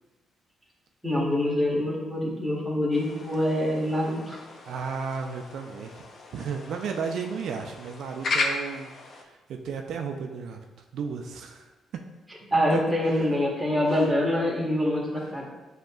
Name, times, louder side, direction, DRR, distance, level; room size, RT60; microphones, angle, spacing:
voice 1, 1.0-4.4 12.5-15.4, left 1 dB, 5° right, -3 dB, 1.3 m, -25 dB
sound 1, 2.9-9.2, left 3 dB, 55° left, 0.5 m, -35 dB
voice 2, 4.7-6.0 6.3-10.6 10.9-12.0 12.7-12.8 13.1-13.3 13.9-14.1, right 6 dB, 75° right, 4 dB, 0.3 m, -34 dB
7.5 x 2.8 x 2.3 m, 1.2 s
cardioid pair, 90°, 0 cm